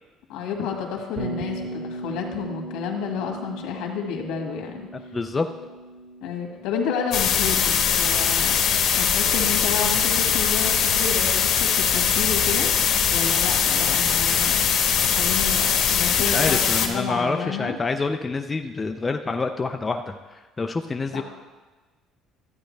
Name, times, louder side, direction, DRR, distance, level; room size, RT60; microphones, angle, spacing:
voice 1, 0.3-4.9 6.2-14.7 15.1-17.8 21.1-21.2, left 6 dB, 75° left, 1 dB, 1.8 m, -30 dB
Bass guitar, 1.2-9.2, right 1 dB, 35° right, 1.3 m, -38 dB
voice 2, 5.1-5.5 16.2-21.2, left 3 dB, 15° left, 5 dB, 0.3 m, -27 dB
sound 1, 7.1-16.9, left 7 dB, 50° left, 1.1 m, -21 dB
12.5 x 9.0 x 3.3 m, 1.3 s
cardioid pair, 175°, 0 cm